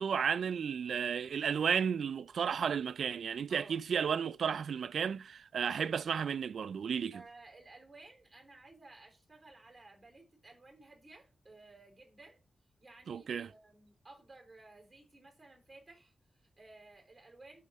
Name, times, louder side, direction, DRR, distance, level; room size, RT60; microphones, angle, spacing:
voice 1, 0.0-7.2 13.1-13.5, right 7 dB, 75° right, 0.3 m, -33 dB
voice 2, 3.5-3.8 7.1-12.4 12.8-17.6, right 2 dB, 15° right, 3.4 m, -56 dB
8.4 x 6.3 x 4.2 m
wide cardioid pair, 155°, 0 cm